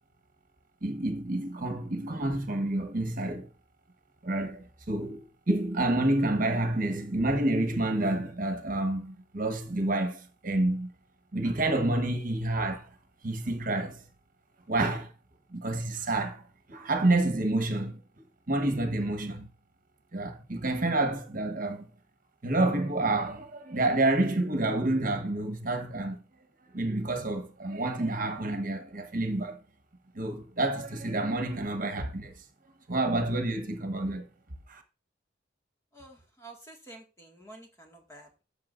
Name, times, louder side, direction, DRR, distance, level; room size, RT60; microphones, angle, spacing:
voice 1, 0.8-3.5 4.2-10.9 11.3-12.9 13.2-14.0 14.7-15.1 15.5-16.4 16.7-18.0 18.5-19.5 20.1-21.9 22.4-26.2 26.7-29.6 30.1-32.3 32.9-34.3 34.7-34.8, right 2 dB, 50° right, 1.2 m, -28 dB
voice 2, 35.9-38.4, right 2 dB, 15° left, 1.9 m, -50 dB
13.0 x 6.7 x 2.6 m
head